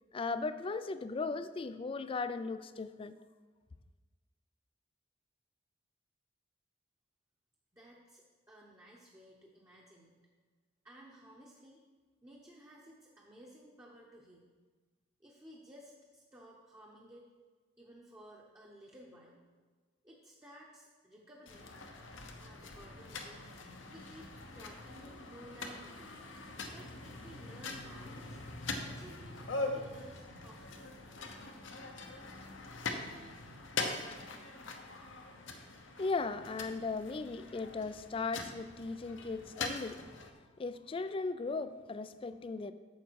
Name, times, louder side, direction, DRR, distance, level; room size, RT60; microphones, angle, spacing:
voice 1, 0.1-3.2 36.0-40.1 40.6-42.7, left 3 dB, 25° left, 12 dB, 0.3 m, -37 dB
voice 2, 7.7-10.2 10.8-11.9 12.2-14.5 15.2-17.2 17.8-19.4 20.0-21.7 22.4-23.6 23.9-26.2 26.7-28.4 28.8-30.9, right 1 dB, 15° right, -3 dB, 0.9 m, -56 dB
sound 1, 21.5-40.3, left 3 dB, 70° left, 0.9 m, -43 dB
9.2 x 6.7 x 4.6 m, 1.4 s
head